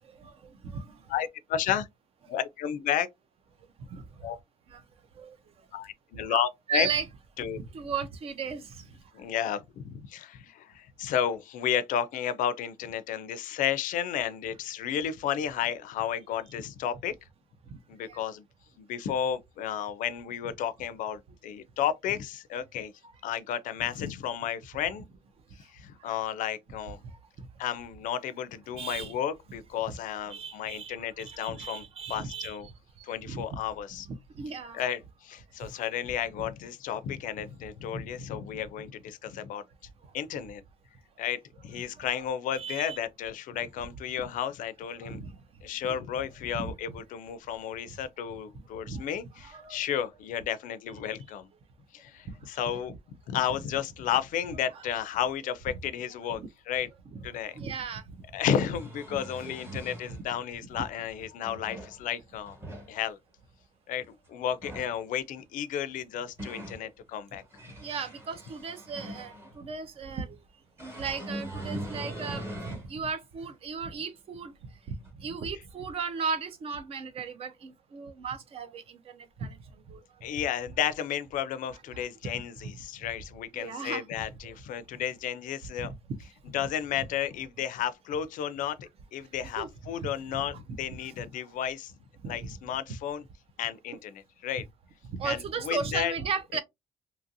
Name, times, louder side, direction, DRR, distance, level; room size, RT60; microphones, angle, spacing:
voice 1, 0.0-1.1 3.9-4.3 4.7-4.8 5.1-5.4 6.3-6.4 6.7-7.0 7.5-9.3 17.7-18.2 26.0-26.1 27.4-27.5 28.8-29.1 30.3-32.6 33.0-33.6 34.3-34.8 35.6-35.8 37.9-38.0 42.0-42.1 42.6-43.0 45.0-45.4 46.6-46.7 48.9-49.0 49.5-49.8 52.3-52.4 57.5-58.2 59.7-59.8 60.1-60.2 67.8-70.4 70.8-74.5 74.9-79.6 79.9-80.0 82.3-82.4 83.6-84.0 85.8-85.9 89.6-89.7 90.3-90.4 92.2-92.5 95.1-96.6, right 5 dB, 40° right, 0.5 m, -36 dB
voice 2, 1.1-1.9 2.3-3.1 4.2-4.4 5.7-6.9 7.4-7.6 9.1-17.1 17.9-18.4 18.8-22.9 23.2-25.1 25.6-27.0 27.6-31.8 32.1-32.7 33.0-34.1 34.7-39.6 40.1-40.6 41.2-45.2 45.6-51.5 51.9-52.9 53.3-56.9 57.2-57.6 58.3-62.6 62.9-63.2 63.9-67.4 71.7-71.8 80.2-85.9 86.5-91.9 92.2-93.3 93.6-94.7 95.2-96.1 96.5-96.6, left 9 dB, 65° left, 0.4 m, -32 dB
sound 1, 57.6-57.7 58.5-60.2 61.2-62.0 62.4-62.9 64.5-64.9 65.9-66.8 67.4-69.6 70.8-72.9 73.4-73.5 75.0-75.1, right 1 dB, 15° right, 1.1 m, -41 dB
2.8 x 2.6 x 2.6 m
cardioid pair, 160°, 15 cm